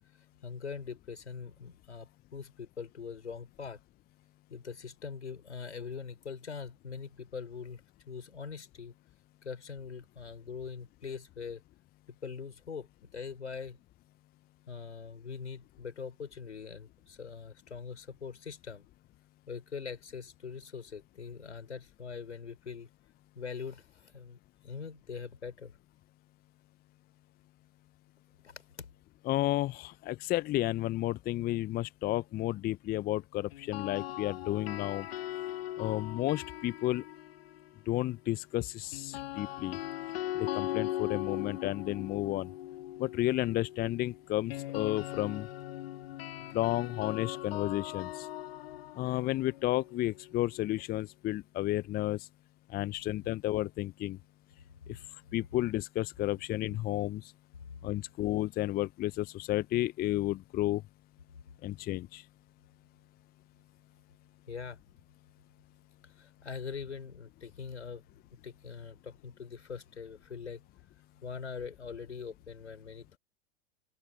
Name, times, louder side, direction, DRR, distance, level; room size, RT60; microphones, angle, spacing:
voice 1, 0.4-3.8 4.5-7.8 8.1-8.9 9.4-11.6 12.2-13.8 14.7-18.9 19.5-22.9 23.4-24.4 24.6-25.7 28.4-28.9 57.7-57.8 64.5-64.8 66.2-68.0 68.4-70.6 71.2-73.2, left 6 dB, 80° left, 5.2 m, -42 dB
voice 2, 29.3-35.1 35.8-37.0 37.9-39.8 40.4-42.5 43.0-45.5 46.5-48.3 49.0-52.3 52.7-54.2 54.9-55.0 55.3-57.3 57.8-60.8 61.6-62.2, left 15 dB, 30° left, 0.7 m, -32 dB
sound 1, 33.5-37.7 38.9-50.8, left 14 dB, 60° left, 1.5 m, -40 dB
open air
figure-of-eight pair, 95°, 33 cm